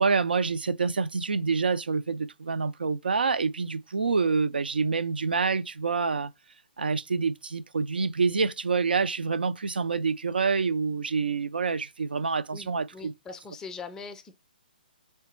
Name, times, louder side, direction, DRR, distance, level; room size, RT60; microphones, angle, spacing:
voice 1, 0.0-6.3 6.8-13.1, right 4 dB, 70° right, 0.4 m, -27 dB
voice 2, 12.5-14.4, left 5 dB, 10° left, 0.4 m, -42 dB
3.5 x 3.3 x 4.1 m
figure-of-eight pair, 130°, 5 cm